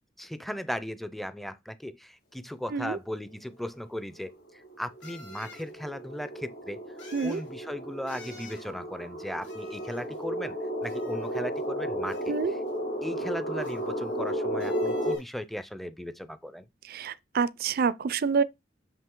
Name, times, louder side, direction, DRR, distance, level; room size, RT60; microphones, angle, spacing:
voice 1, 0.2-6.8 7.2-10.6 10.8-12.3 13.0-16.6, equal, ahead, 0.5 m, -37 dB
sound 1, 3.7-3.8 5.0-5.7 7.0-7.5 8.1-8.7 9.4-10.2 10.8-11.6 12.1-12.7 13.6-14.3 14.6-15.3, left 3 dB, 80° left, 2.1 m, -50 dB
sound 2, 3.8-3.9 4.3-15.2, equal, 55° left, 1.9 m, -33 dB
voice 2, 16.8-18.4, right 5 dB, 55° right, 0.4 m, -27 dB
5.8 x 5.6 x 3.7 m
head